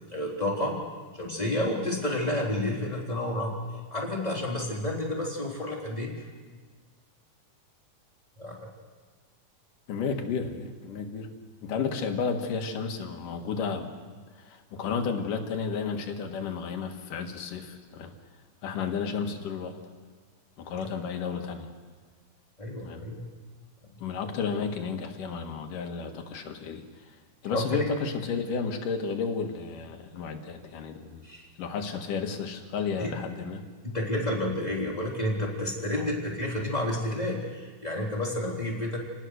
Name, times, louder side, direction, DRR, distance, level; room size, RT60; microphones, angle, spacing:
voice 1, 0.1-0.8 1.1-3.5 3.9-6.1 8.4-8.7 22.6-23.2 27.5-27.9 31.2-31.5 33.0-33.1 33.8-39.0, left 1 dB, 10° left, -3 dB, 3.6 m, -30 dB
voice 2, 9.9-11.3 11.6-13.9 14.4-18.1 18.6-19.7 20.6-21.7 22.8-23.0 24.0-27.2 27.4-31.2 31.6-33.6 35.9-36.1, left 5 dB, 90° left, 5 dB, 3.3 m, -32 dB
28.5 x 19.5 x 6.5 m, 1.5 s
omnidirectional pair, 3.6 m